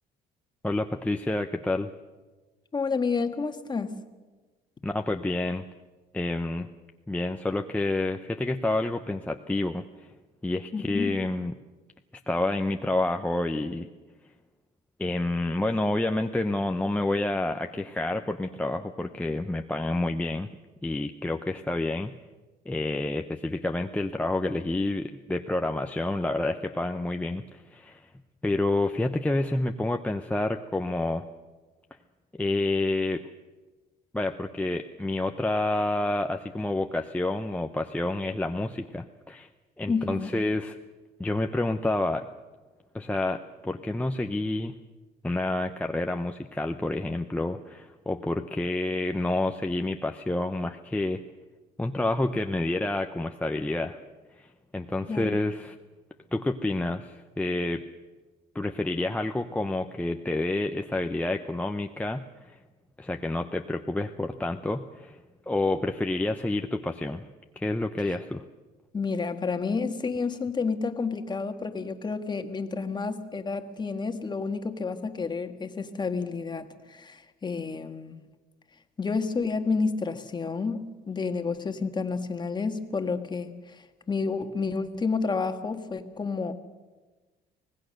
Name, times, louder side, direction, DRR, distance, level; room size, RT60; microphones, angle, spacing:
voice 1, 0.6-1.9 4.8-5.6 6.1-6.7 7.1-10.1 10.4-11.5 12.3-13.9 15.0-20.5 20.8-22.1 22.7-28.1 28.4-31.2 32.4-33.2 34.1-39.5 39.8-40.8 41.2-42.3 42.9-44.7 45.2-51.2 51.8-54.0 54.4-54.5 54.7-55.8 56.3-57.8 58.5-62.6 63.0-65.2 65.5-67.2 67.6-68.4, left 2 dB, 10° left, 4 dB, 0.8 m, -28 dB
voice 2, 2.7-3.9 10.7-11.1 39.9-40.3 55.1-55.4 68.9-78.2 79.0-86.5, left 4 dB, 25° left, 7 dB, 1.6 m, -30 dB
25.0 x 18.0 x 6.5 m, 1.3 s
cardioid pair, 110°, 17 cm